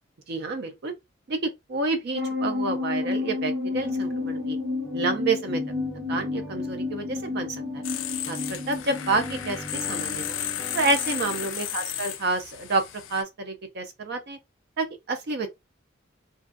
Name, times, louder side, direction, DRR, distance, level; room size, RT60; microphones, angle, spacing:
voice 1, 0.3-0.9 1.3-4.6 4.9-5.6 6.1-7.8 8.3-10.3 10.7-12.8 13.1-14.4 14.8-15.5, right 3 dB, 55° right, 0.4 m, -29 dB
sound 1, 2.1-9.6, left 3 dB, 90° right, 0.8 m, -30 dB
sound 2, 3.7-11.5, equal, 10° right, 0.7 m, -41 dB
sound 3, 7.8-13.2, left 11 dB, 70° left, 0.3 m, -33 dB
2.4 x 2.3 x 2.5 m
head